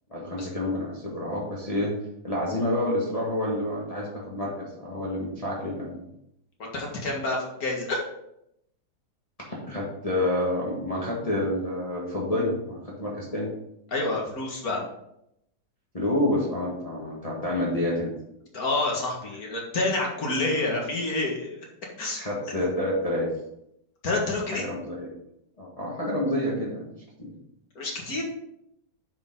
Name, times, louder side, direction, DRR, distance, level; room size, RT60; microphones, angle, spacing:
voice 1, 0.1-1.9 2.2-6.0 9.7-13.5 15.9-18.1 22.2-23.3 24.5-25.1 25.6-26.9 27.2-27.3, left 1 dB, 20° left, -5 dB, 1.6 m, -28 dB
voice 2, 6.6-8.0 13.9-14.8 18.5-21.6 22.0-22.2 24.0-24.7 27.8-28.2, left 2 dB, 50° left, -1 dB, 2.1 m, -28 dB
9.7 x 5.3 x 3.8 m, 0.79 s
omnidirectional pair, 2.0 m